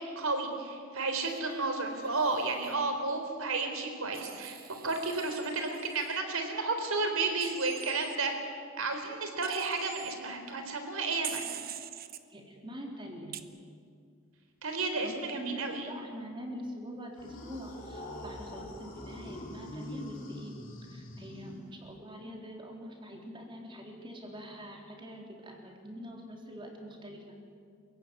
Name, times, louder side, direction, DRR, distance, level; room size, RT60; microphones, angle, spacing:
voice 1, 0.0-4.6 4.8-8.3 8.8-11.5 14.6-15.9, right 3 dB, 80° right, 5 dB, 4.0 m, -32 dB
Wild animals, 1.2-2.7 4.1-6.2 7.4-8.2 9.4-10.1 11.2-12.2 13.3-13.4, right 11 dB, 45° right, 1.1 m, -45 dB
voice 2, 12.3-13.4 15.0-20.6 20.9-27.2, equal, 25° right, 0 dB, 3.7 m, -44 dB
sound 1, 17.1-22.0, left 1 dB, 40° left, 3.7 m, -44 dB
27.5 x 16.0 x 9.7 m, 2.3 s
head